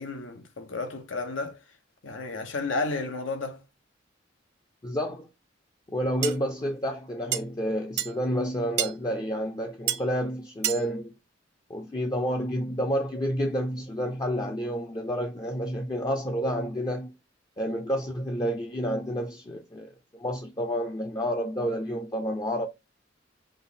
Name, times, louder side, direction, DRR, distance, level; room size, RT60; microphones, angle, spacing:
voice 1, 0.0-1.6 2.0-3.6, left 3 dB, 85° left, 0.9 m, -32 dB
voice 2, 4.8-5.3 5.9-11.1 11.7-17.1 17.6-22.7, equal, 20° left, 0.5 m, -29 dB
sound 1, 6.2-6.3 7.3-7.4 8.0-8.1 8.8-8.9 9.9-10.0 10.6-10.8, right 12 dB, 60° right, 0.5 m, -27 dB
5.2 x 2.1 x 4.0 m
head